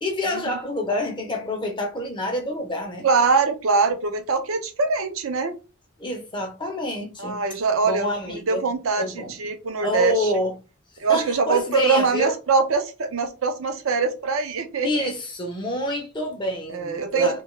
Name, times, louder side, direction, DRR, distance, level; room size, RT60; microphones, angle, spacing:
voice 1, 0.0-3.0 6.0-7.4 7.8-8.6 9.0-9.3 9.8-10.5 11.1-12.3 14.8-17.4, left 1 dB, 20° left, 0.6 m, -27 dB
voice 2, 3.0-5.6 7.2-10.3 11.0-15.1 16.7-17.4, right 4 dB, 70° right, 0.5 m, -23 dB
2.8 x 2.2 x 3.0 m
head